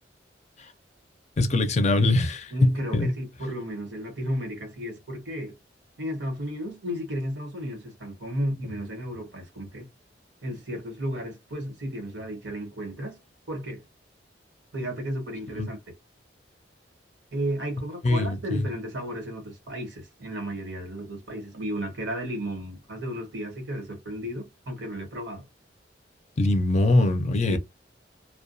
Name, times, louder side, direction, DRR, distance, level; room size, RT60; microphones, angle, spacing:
voice 1, 1.4-3.1 15.6-15.7 18.0-18.7 26.4-27.6, left 2 dB, 40° left, 0.5 m, -22 dB
voice 2, 2.5-5.6 6.0-9.9 10.4-13.2 13.5-13.8 14.7-15.9 17.3-25.4 27.5-27.6, equal, 80° right, 1.2 m, -33 dB
2.2 x 2.2 x 2.6 m
head